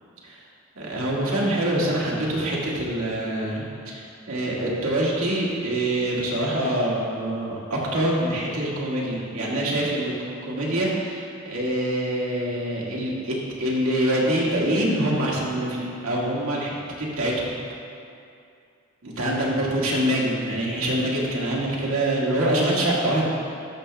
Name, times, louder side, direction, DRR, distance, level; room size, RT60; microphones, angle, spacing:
voice 1, 0.7-10.1 10.4-17.5 19.0-23.2, right 1 dB, 85° right, -4 dB, 1.8 m, -25 dB
12.5 x 6.0 x 3.4 m, 2.4 s
head